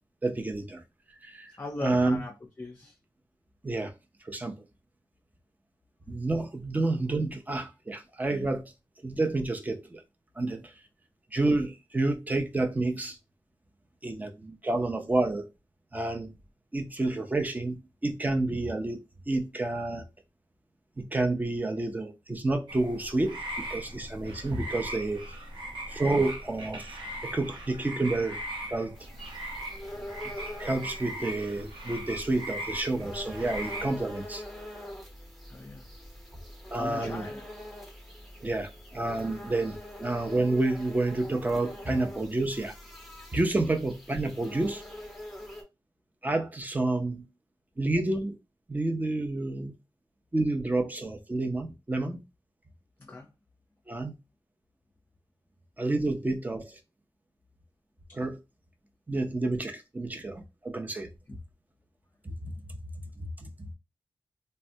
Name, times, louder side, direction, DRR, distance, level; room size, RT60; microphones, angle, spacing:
voice 1, 0.2-0.8 1.2-1.5 1.8-2.2 3.6-3.9 4.2-4.6 6.1-8.6 9.0-10.0 10.4-10.7 11.3-13.2 14.0-15.5 15.9-16.3 16.7-19.0 19.3-20.0 21.0-23.4 23.7-25.3 25.9-26.9 27.2-28.4 28.7-29.0 30.6-34.4 36.7-37.3 38.4-42.7 43.3-44.8 46.2-47.3 47.8-48.4 48.7-49.7 50.3-52.2 53.9-54.1 55.8-56.8 58.1-58.4 59.1-61.1 62.2-62.5 63.2-63.7, right 2 dB, 20° right, 0.5 m, -29 dB
voice 2, 1.6-2.9 35.5-35.8 36.8-37.5 53.0-53.3 61.3-61.4, left 2 dB, 25° left, 0.5 m, -39 dB
sound 1, 22.7-33.9, right 1 dB, 85° right, 0.8 m, -39 dB
sound 2, 29.0-45.6, left 1 dB, ahead, 0.9 m, -44 dB
3.2 x 2.1 x 2.6 m
wide cardioid pair, 90°, 8 cm